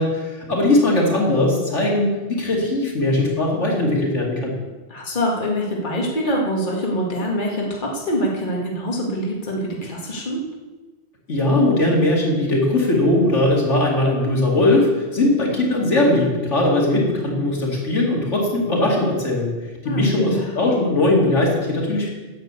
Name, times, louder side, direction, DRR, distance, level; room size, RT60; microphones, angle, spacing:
voice 1, 0.0-4.5 11.3-19.5 19.8-22.1, left 2 dB, 80° left, -2 dB, 2.9 m, -19 dB
voice 2, 4.9-10.4 19.8-20.5, equal, 45° left, -2 dB, 2.1 m, -24 dB
10.5 x 7.4 x 8.2 m, 1.2 s
omnidirectional pair, 1.2 m